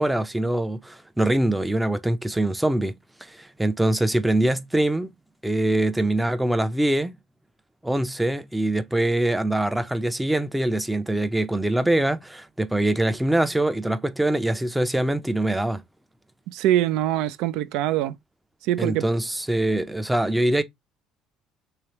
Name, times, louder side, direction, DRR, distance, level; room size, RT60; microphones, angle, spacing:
voice 1, 0.0-5.1 5.4-7.1 7.8-15.8 18.8-20.6, right 1 dB, 5° right, 0.5 m, -23 dB
voice 2, 16.5-18.2 18.6-19.0, right 13 dB, 80° right, 0.4 m, -23 dB
3.4 x 3.3 x 2.9 m
cardioid pair, 135°, 0 cm